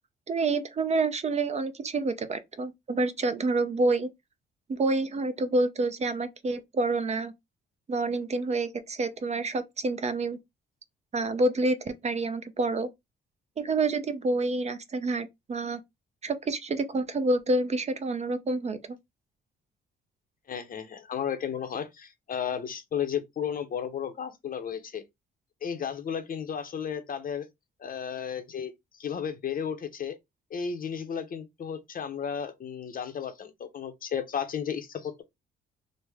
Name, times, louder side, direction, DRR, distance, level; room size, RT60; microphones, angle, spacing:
voice 1, 0.3-4.1 4.7-7.3 7.9-10.4 11.1-12.9 13.6-15.8 16.2-18.8, right 2 dB, 35° right, 0.5 m, -28 dB
voice 2, 20.5-25.0 25.6-27.5 27.8-28.7 29.0-30.2 30.5-35.2, left 7 dB, 45° left, 0.7 m, -33 dB
3.2 x 2.1 x 3.4 m
cardioid pair, 90°, 20 cm